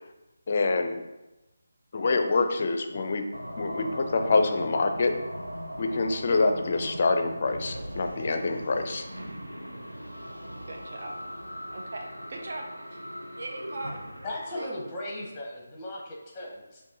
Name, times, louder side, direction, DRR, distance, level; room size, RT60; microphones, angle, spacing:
voice 1, 0.5-1.0 1.9-3.2 3.6-5.1 5.8-9.0, left 3 dB, 40° left, 6 dB, 0.5 m, -26 dB
sound 1, 3.3-15.3, equal, 85° right, 0.6 m, -39 dB
voice 2, 10.7-11.1 11.7-12.6 12.9-13.0 13.4-14.0 14.5-14.7, right 2 dB, 45° right, 1 dB, 0.7 m, -39 dB
voice 3, 14.2-16.8, left 1 dB, 15° left, -1 dB, 0.9 m, -37 dB
5.3 x 2.6 x 3.9 m, 1.0 s
figure-of-eight pair, 155°, 0 cm